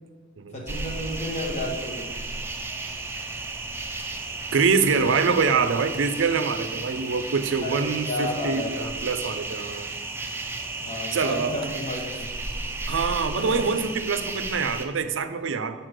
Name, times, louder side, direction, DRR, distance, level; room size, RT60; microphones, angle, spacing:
voice 1, 0.5-2.1 7.6-8.8 10.8-12.3 12.5-12.6 13.3-13.6, left 1 dB, 35° left, -1 dB, 1.0 m, -32 dB
sound 1, 0.7-14.9, right 3 dB, 10° right, 0.5 m, -34 dB
voice 2, 4.5-9.9 10.2-10.3 11.1-11.5 12.9-15.8, right 5 dB, 70° right, 10 dB, 0.5 m, -25 dB
6.5 x 4.2 x 6.4 m, 1.5 s
head